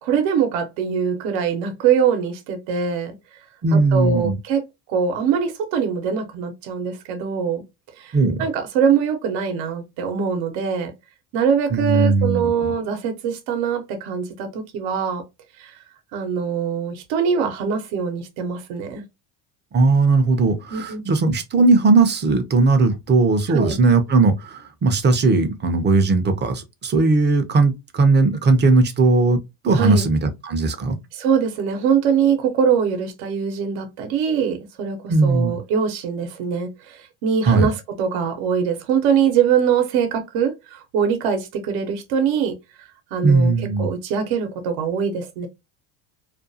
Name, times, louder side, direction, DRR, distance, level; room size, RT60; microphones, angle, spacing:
voice 1, 0.0-3.2 3.7-4.6 4.9-7.6 8.0-10.9 11.3-15.2 15.6-15.8 16.1-19.1 20.7-21.0 23.5-23.8 29.7-30.1 31.1-45.5, right 7 dB, 75° right, 0.9 m, -23 dB
voice 2, 3.6-4.4 8.1-8.4 11.7-12.7 19.7-29.4 29.6-31.0 35.1-35.6 37.5-37.7 43.2-43.9, right 3 dB, 25° right, 0.5 m, -18 dB
2.5 x 2.3 x 2.6 m
supercardioid pair, 105°, 47 cm